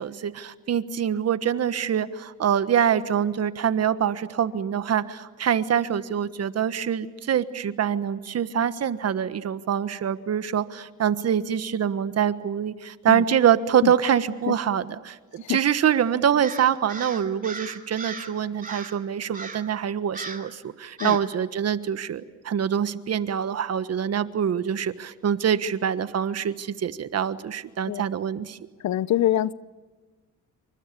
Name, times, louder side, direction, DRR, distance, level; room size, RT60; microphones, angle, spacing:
voice 1, 0.0-28.6, right 8 dB, 55° right, 12 dB, 1.4 m, -25 dB
Crow, 16.4-18.3 18.6-19.0 19.3-19.7 20.1-20.5 21.0-21.3, right 4 dB, 30° right, 3.0 m, -37 dB
voice 2, 28.8-29.5, left 12 dB, 65° left, 18 dB, 0.8 m, -24 dB
28.5 x 25.0 x 6.8 m, 1.3 s
cardioid pair, 90°, 30 cm